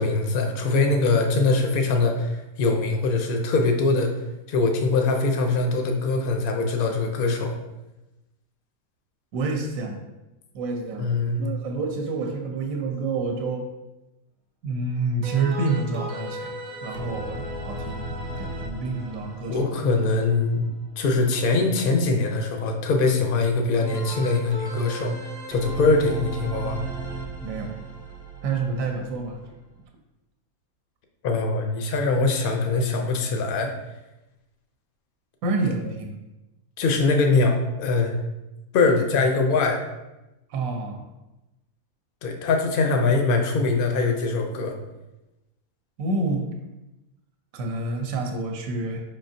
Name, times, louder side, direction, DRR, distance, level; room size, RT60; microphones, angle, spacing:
voice 1, 0.0-4.1 4.5-7.5 11.0-11.4 19.5-20.7 21.0-25.2 25.5-26.8 31.2-33.7 36.8-38.2 38.7-39.8 42.2-44.7, left 3 dB, 65° left, 4 dB, 0.5 m, -22 dB
voice 2, 9.3-10.0 10.5-13.7 14.6-16.6 16.8-19.9 27.4-27.8 28.4-29.4 35.4-36.2 40.5-41.0 46.0-46.5 47.5-49.0, right 3 dB, 70° right, 3 dB, 1.1 m, -28 dB
sound 1, 15.2-21.0 23.8-29.8, right 2 dB, 40° right, 0.7 m, -36 dB
5.0 x 3.7 x 2.7 m, 0.99 s
omnidirectional pair, 1.5 m